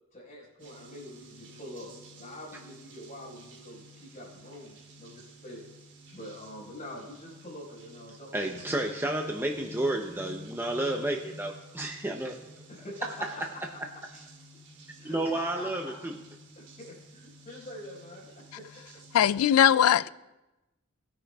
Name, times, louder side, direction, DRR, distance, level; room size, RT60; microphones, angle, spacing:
voice 1, 0.1-1.9 2.2-5.6 6.1-8.9 12.7-13.1 14.1-14.5 15.0-16.0 16.6-18.6 19.9-20.0, left 1 dB, 40° left, 4.6 m, -45 dB
sound 1, 0.6-19.4, equal, 60° right, 1.9 m, -51 dB
voice 2, 8.3-12.4 13.2-13.3 15.0-16.2, right 1 dB, 10° right, 0.6 m, -31 dB
voice 3, 19.1-20.1, left 10 dB, 80° left, 0.3 m, -20 dB
19.5 x 9.9 x 2.3 m
head